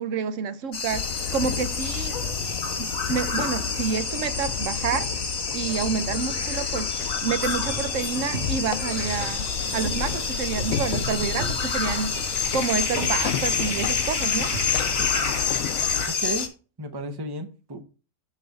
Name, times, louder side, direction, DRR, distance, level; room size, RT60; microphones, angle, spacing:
voice 1, 0.0-2.2 2.8-5.1 5.5-6.9 7.2-9.5 9.7-12.1 12.5-14.5, right 6 dB, 75° right, 1.1 m, -28 dB
sound 1, 0.7-16.5, left 5 dB, 60° left, 1.7 m, -28 dB
sound 2, 0.9-16.1, left 10 dB, 90° left, 1.0 m, -33 dB
sound 3, 1.4-14.7, right 1 dB, 55° right, 2.5 m, -39 dB
voice 2, 16.1-16.5 16.8-17.8, right 1 dB, 20° right, 0.9 m, -33 dB
8.4 x 5.8 x 3.9 m
omnidirectional pair, 1.4 m